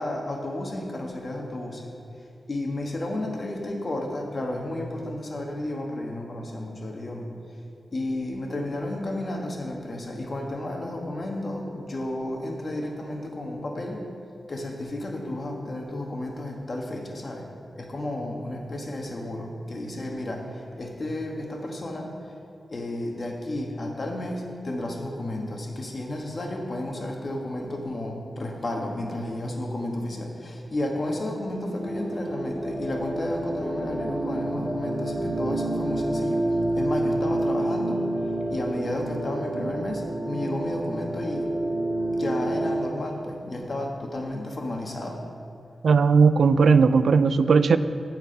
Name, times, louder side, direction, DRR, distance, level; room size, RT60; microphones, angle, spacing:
voice 1, 0.0-1.9 2.5-7.3 7.9-14.0 14.5-17.5 17.7-22.3 22.7-36.5 36.7-38.1 38.5-41.5 42.1-45.2, left 1 dB, 45° left, 1 dB, 1.5 m, -32 dB
sound 1, 31.8-42.8, right 1 dB, 20° left, 2.7 m, -28 dB
voice 2, 45.8-47.8, right 5 dB, 80° right, 12 dB, 0.3 m, -17 dB
10.0 x 4.7 x 7.9 m, 2.6 s
wide cardioid pair, 85°, 0 cm